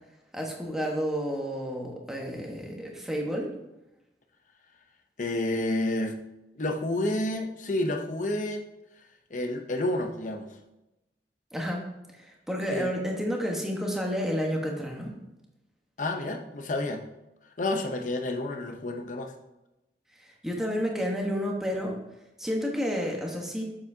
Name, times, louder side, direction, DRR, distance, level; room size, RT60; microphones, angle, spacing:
voice 1, 0.3-3.5 11.5-11.8 12.2-15.1 20.4-22.0 22.4-23.6, equal, 5° right, -1 dB, 1.1 m, -30 dB
voice 2, 5.2-6.2 6.6-8.6 9.3-10.5 12.7-12.9 16.0-17.0 17.6-19.3, left 1 dB, 45° left, 4 dB, 0.7 m, -29 dB
7.6 x 7.2 x 2.7 m, 0.94 s
head